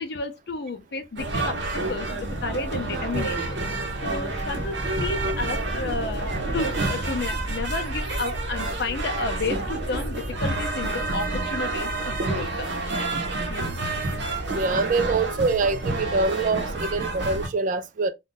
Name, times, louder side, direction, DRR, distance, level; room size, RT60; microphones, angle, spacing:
voice 1, 0.0-3.6 4.0-12.7 13.5-13.7, left 3 dB, 55° left, 0.6 m, -32 dB
sound 1, 1.2-17.5, right 2 dB, 70° right, 0.7 m, -29 dB
sound 2, 4.4-11.4, equal, ahead, 0.8 m, -36 dB
voice 2, 14.5-18.1, right 3 dB, 45° right, 0.3 m, -25 dB
2.6 x 2.3 x 3.7 m
head